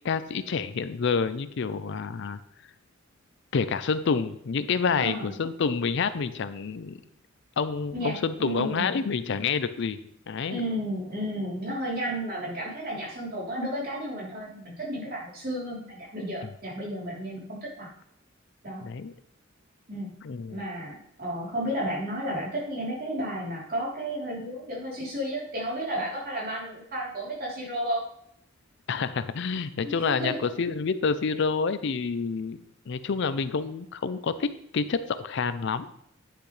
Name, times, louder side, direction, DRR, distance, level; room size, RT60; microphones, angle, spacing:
voice 1, 0.0-2.4 3.5-7.0 7.6-10.0 10.3-10.6 16.4-16.5 18.8-19.1 20.2-20.6 28.9-32.6 32.9-35.9, left 5 dB, 60° left, 13 dB, 0.5 m, -28 dB
voice 2, 5.0-5.3 7.9-9.0 10.5-17.9 18.6-18.8 19.9-20.1 20.5-28.0 29.8-30.3, right 1 dB, 45° right, -5 dB, 3.4 m, -32 dB
9.9 x 6.7 x 3.2 m, 0.70 s
head